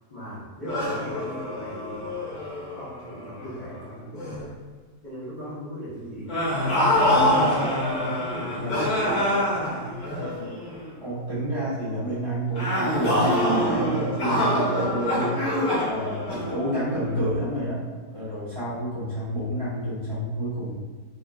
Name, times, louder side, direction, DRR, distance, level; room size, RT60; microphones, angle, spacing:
voice 1, 0.1-2.1 2.7-4.6 5.0-6.5 7.0-9.7, equal, 35° left, -12 dB, 0.9 m, -38 dB
sound 1, 0.7-3.8 4.2-4.5 6.3-10.9 12.5-17.1, left 1 dB, 65° left, 1.6 m, -25 dB
voice 2, 11.0-15.4 15.9-20.8, right 1 dB, 20° right, -13 dB, 1.5 m, -29 dB
4.1 x 2.8 x 2.3 m, 1.4 s
omnidirectional pair, 1.8 m